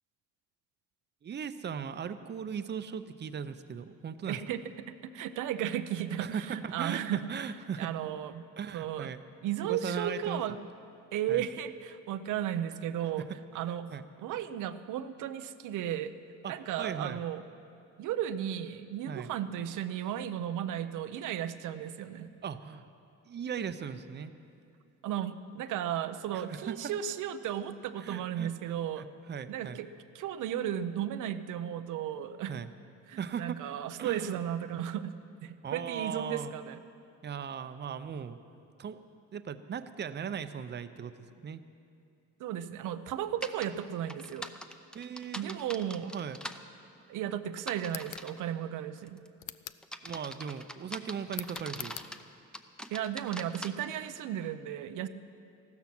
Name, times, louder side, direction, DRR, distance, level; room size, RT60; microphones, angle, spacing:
voice 1, 1.2-4.4 6.2-7.9 8.6-9.2 9.6-10.4 11.3-11.4 13.2-13.3 13.9-14.0 16.4-17.2 19.1-19.3 22.4-22.9 23.2-24.3 26.3-26.9 28.0-29.8 32.5-32.7 33.2-33.6 34.0-34.4 35.6-36.6 37.2-38.4 38.8-39.0 39.3-41.6 44.9-45.6 46.0-46.4 50.0-52.0, right 7 dB, 35° right, 11 dB, 0.6 m, -38 dB
voice 2, 4.3-4.6 4.9-7.2 7.8-8.5 8.7-9.1 9.4-10.6 11.1-13.3 13.5-16.1 16.5-17.4 18.0-22.3 25.0-29.0 29.5-29.9 30.1-32.5 33.1-36.8 42.4-44.5 45.3-46.1 47.1-49.2 52.9-55.1, right 10 dB, 85° right, 10 dB, 0.6 m, -35 dB
sound 1, 43.4-43.7 44.1-46.6 47.6-48.4 49.0-49.3 49.8-52.2 52.5-53.7, equal, 5° left, 0.7 m, -42 dB
sound 2, 47.8-48.3 49.4-49.9 51.3-52.1, left 15 dB, 85° left, 0.5 m, -43 dB
14.5 x 13.0 x 6.0 m, 2.5 s
cardioid pair, 90°, 30 cm